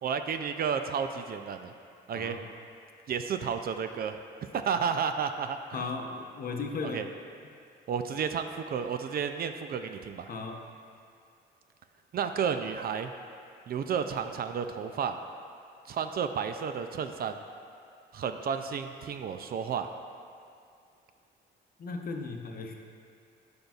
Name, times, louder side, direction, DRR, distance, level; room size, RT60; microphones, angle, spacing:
voice 1, 0.0-1.7 2.1-2.4 3.1-4.2 4.5-5.8 6.8-7.1 7.9-10.3 12.1-13.1 13.7-15.2 15.9-17.4 18.1-19.9, right 7 dB, 50° right, 8 dB, 0.4 m, -32 dB
voice 2, 5.7-7.1 10.3-10.7 21.8-22.7, left 4 dB, 50° left, 3 dB, 0.8 m, -36 dB
11.5 x 5.3 x 2.4 m, 2.4 s
cardioid pair, 90°, 20 cm